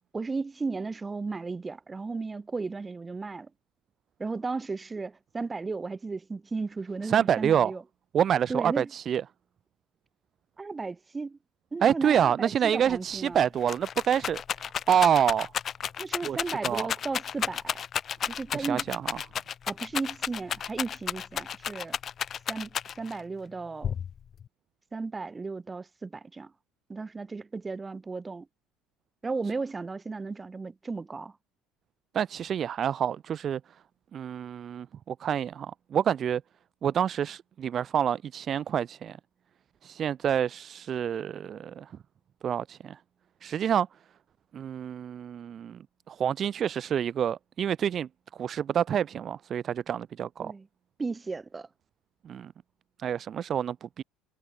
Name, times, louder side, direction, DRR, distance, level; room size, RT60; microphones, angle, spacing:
voice 1, 0.1-3.5 4.2-7.8 8.5-8.9 10.6-11.4 11.7-13.4 16.0-17.8 18.3-18.8 19.7-22.0 22.5-22.7 23.0-23.9 24.9-26.5 26.9-28.5 29.2-31.3 50.4-50.7 51.0-51.7, right 4 dB, 20° right, 5.8 m, -35 dB
voice 2, 7.0-7.7 8.1-9.2 11.8-14.4 14.9-15.5 16.2-16.4 16.6-16.9 18.5-19.2 32.1-33.6 34.1-36.4 36.8-39.2 39.8-41.9 42.4-43.0 43.4-43.9 44.5-45.8 46.1-48.1 48.4-50.5 52.2-52.5 53.0-54.0, right 9 dB, 45° right, 0.7 m, -27 dB
Rattle, 12.9-13.0 13.3-23.2 23.8-24.5, left 8 dB, 40° left, 0.6 m, -32 dB
supercardioid pair, 95°, 0 cm